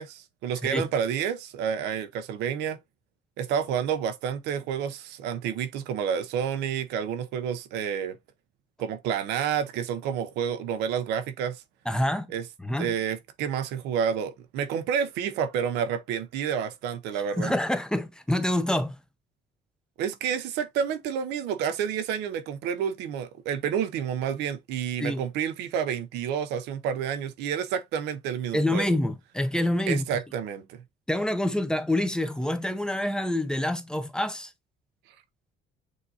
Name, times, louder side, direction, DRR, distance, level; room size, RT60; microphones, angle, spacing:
voice 1, 0.0-2.8 3.4-8.2 8.8-11.6 12.3-12.5 12.8-17.5 20.0-29.0 29.9-30.8, right 8 dB, 90° right, 0.7 m, -29 dB
voice 2, 11.9-12.3 12.6-12.9 17.4-19.0 25.0-25.2 28.5-30.1 31.1-34.5, left 1 dB, 5° left, 0.5 m, -27 dB
6.4 x 2.6 x 2.7 m
cardioid pair, 110°, 17 cm